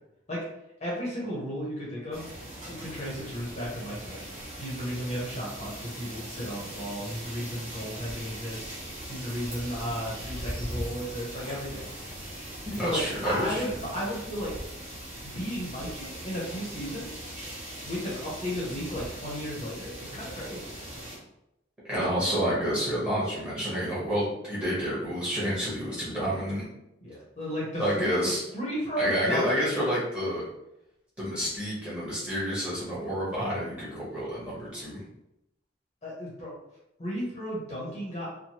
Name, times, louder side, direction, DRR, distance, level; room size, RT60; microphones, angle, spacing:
voice 1, 0.8-2.3 2.7-8.7 9.1-11.8 12.8-14.5 15.3-17.2 17.8-20.7 27.0-29.7 36.0-36.5 37.0-38.3, equal, 35° left, -6 dB, 0.8 m, -34 dB
sound 1, 2.1-21.2, right 1 dB, 35° right, 1.1 m, -40 dB
voice 2, 12.6-13.7 21.8-26.6 27.8-28.4 29.0-30.5 31.2-35.0, equal, 5° right, -9 dB, 1.2 m, -29 dB
3.1 x 2.2 x 2.8 m, 0.86 s
head